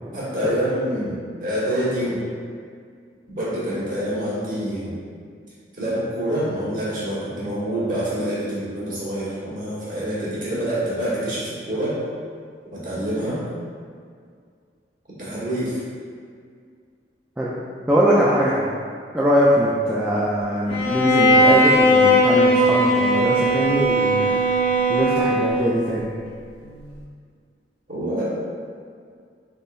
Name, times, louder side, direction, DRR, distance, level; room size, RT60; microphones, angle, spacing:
voice 1, 0.1-2.3 3.3-4.9 5.8-12.0 12.8-13.4 15.2-15.8 27.9-28.2, right 1 dB, 50° right, -9 dB, 1.3 m, -26 dB
voice 2, 17.9-18.7 19.1-24.4 24.9-26.0, equal, 10° right, -7 dB, 0.3 m, -21 dB
Bowed string instrument, 20.7-25.8, equal, 30° left, 0.8 m, -18 dB
3.9 x 3.6 x 2.5 m, 2.1 s
head